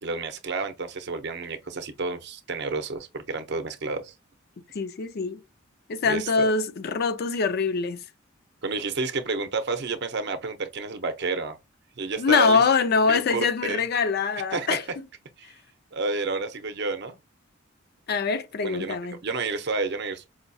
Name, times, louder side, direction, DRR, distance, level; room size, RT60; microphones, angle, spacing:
voice 1, 0.0-4.1 6.0-6.5 8.6-11.6 12.0-12.6 13.1-13.8 14.5-14.8 15.4-15.5 15.9-17.2 18.6-19.0 19.2-20.3, right 3 dB, 55° right, 0.6 m, -30 dB
voice 2, 4.7-5.4 5.9-8.0 12.2-14.8 18.1-19.2, left 5 dB, 50° left, 0.4 m, -24 dB
4.9 x 2.3 x 2.6 m
head